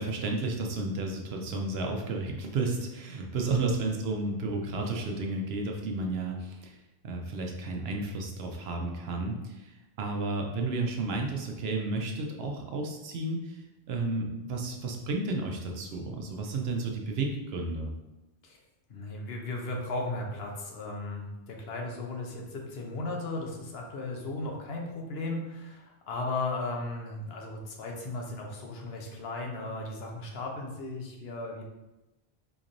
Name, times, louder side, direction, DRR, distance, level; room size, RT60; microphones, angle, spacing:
voice 1, 0.0-6.8 7.0-9.7 10.0-13.6 13.9-17.9, right 3 dB, 75° right, 2 dB, 0.8 m, -32 dB
voice 2, 18.9-31.6, left 2 dB, 70° left, 1 dB, 0.9 m, -36 dB
4.3 x 3.0 x 2.5 m, 0.99 s
omnidirectional pair, 1.1 m